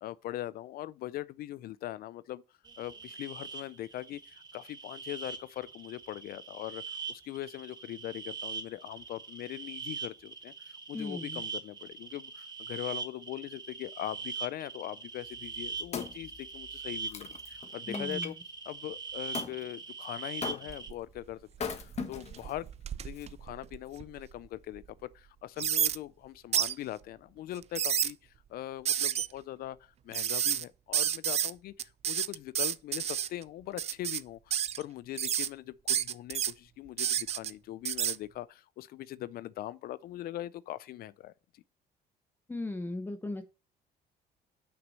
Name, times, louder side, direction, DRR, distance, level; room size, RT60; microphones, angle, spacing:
voice 1, 0.0-2.4 2.8-18.4 18.7-22.7 23.0-41.6, left 14 dB, 65° left, 0.4 m, -41 dB
Chicharras from Chimalapas mountain, 2.6-20.9, right 5 dB, 25° right, 1.1 m, -42 dB
voice 2, 10.9-11.4 17.9-18.3 42.5-43.4, left 2 dB, 10° left, 0.7 m, -37 dB
Wood, 15.4-18.3 19.3-19.6 20.4-20.9 21.5-22.5 23.2-23.3, left 6 dB, 40° left, 1.3 m, -39 dB
sound 1, 20.7-21.2 21.6-24.3 24.8-24.9 25.6-26.0 26.5-26.7 27.6-28.1 28.9-29.3 30.1-30.6 30.9-31.5 31.8-33.3 33.8-34.2 34.5-34.8 35.2-35.5 35.9-36.5 37.0-37.5 37.9-38.2, right 9 dB, 40° right, 0.4 m, -30 dB
6.2 x 5.9 x 5.4 m
cardioid pair, 110°, 17 cm